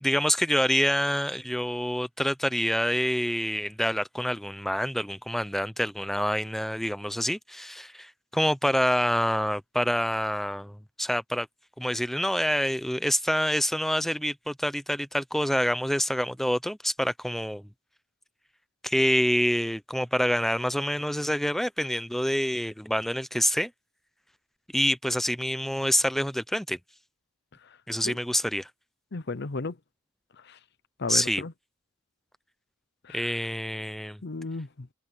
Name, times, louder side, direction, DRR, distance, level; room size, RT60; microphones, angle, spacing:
voice 1, 0.0-11.5 11.8-17.7 18.8-23.7 24.7-26.8 27.9-28.7 31.1-31.4 33.1-34.2, equal, ahead, 0.7 m, -27 dB
voice 2, 29.1-29.7 31.0-31.5 33.1-33.3 34.2-34.9, left 3 dB, 55° left, 0.8 m, -34 dB
head